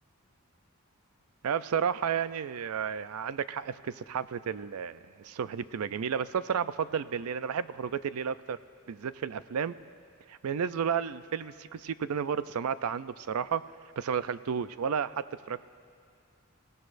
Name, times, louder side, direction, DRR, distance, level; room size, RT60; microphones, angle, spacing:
voice 1, 1.4-8.6 8.9-9.7 10.3-13.6 14.0-15.7, right 7 dB, 85° right, 14 dB, 0.4 m, -32 dB
29.0 x 16.5 x 2.6 m, 2.2 s
head